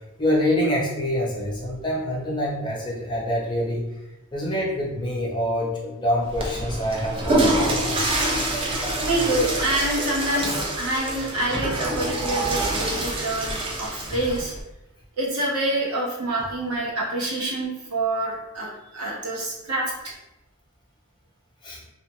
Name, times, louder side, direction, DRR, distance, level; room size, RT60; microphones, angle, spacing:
voice 1, 0.2-3.9 4.3-8.0 21.6-21.8, equal, 20° left, -5 dB, 0.6 m, -26 dB
Water / Toilet flush, 6.2-14.6, right 1 dB, 25° right, 0.4 m, -26 dB
voice 2, 9.0-14.5 15.2-20.1, right 1 dB, 90° right, -4 dB, 0.9 m, -27 dB
2.8 x 2.1 x 2.8 m, 0.94 s
head